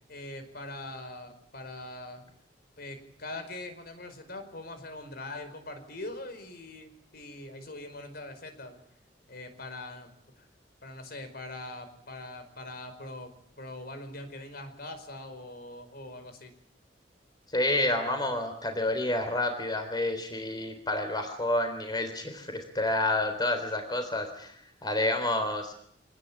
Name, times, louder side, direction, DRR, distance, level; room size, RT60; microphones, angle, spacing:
voice 1, 0.1-2.2 2.8-8.8 9.3-10.1 10.4-10.5 10.8-13.3 13.6-16.5, left 2 dB, 60° left, 9 dB, 5.0 m, -42 dB
voice 2, 17.5-25.7, left 1 dB, 25° left, 6 dB, 3.8 m, -29 dB
26.0 x 19.5 x 8.7 m, 0.68 s
head